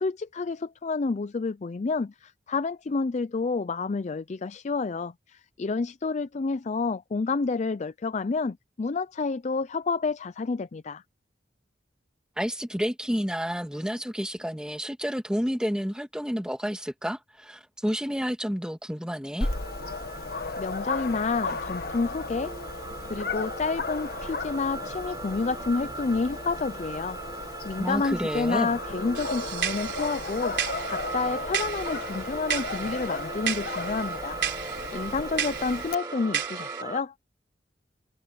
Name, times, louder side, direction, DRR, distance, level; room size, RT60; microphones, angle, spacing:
voice 1, 0.0-11.0 20.6-22.5 23.1-27.2 27.4-30.5 30.9-34.4 34.9-37.1, left 4 dB, 40° left, 0.4 m, -29 dB
voice 2, 12.4-19.5 27.8-28.8, equal, 5° right, 2.0 m, -30 dB
Dog, 19.4-35.9, left 3 dB, 60° left, 1.8 m, -35 dB
sound 1, 19.4-37.0, right 3 dB, 25° right, 5.4 m, -39 dB
sound 2, 29.1-36.8, right 9 dB, 75° right, 4.1 m, -34 dB
head